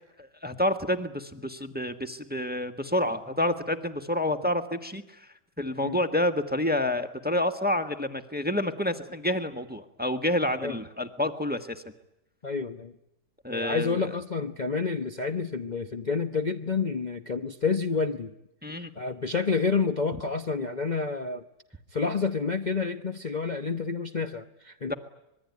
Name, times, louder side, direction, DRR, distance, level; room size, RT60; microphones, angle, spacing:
voice 1, 0.2-5.3 5.6-11.8 13.4-14.1 18.6-18.9 24.9-25.0, left 1 dB, 5° right, 7 dB, 1.4 m, -28 dB
voice 2, 12.4-12.9 13.5-18.3 18.7-21.4 21.9-24.9, left 4 dB, 30° left, 5 dB, 1.0 m, -29 dB
25.5 x 21.5 x 9.5 m, 0.86 s
omnidirectional pair, 1.8 m